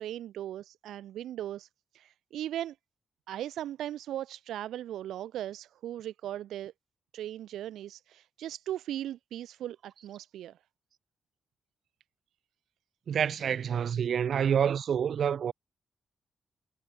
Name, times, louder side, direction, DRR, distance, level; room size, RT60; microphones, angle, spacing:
voice 1, 0.0-1.7 1.9-2.8 3.3-6.7 7.1-10.6, right 12 dB, 85° right, 0.7 m, -38 dB
voice 2, 13.1-15.5, right 8 dB, 70° right, 1.1 m, -27 dB
supercardioid pair, 55°, 0 cm